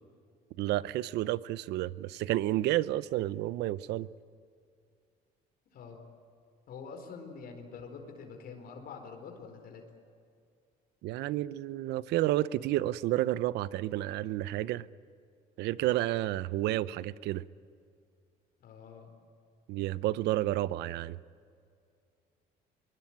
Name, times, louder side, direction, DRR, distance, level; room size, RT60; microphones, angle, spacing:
voice 1, 0.6-4.1 11.0-14.9 15.6-17.4 19.7-21.2, right 15 dB, 85° right, 17 dB, 0.7 m, -30 dB
voice 2, 5.7-6.0 6.7-9.8 18.6-19.1, left 5 dB, 65° left, 4 dB, 4.5 m, -46 dB
24.5 x 23.0 x 8.9 m, 2.3 s
cardioid pair, 110°, 17 cm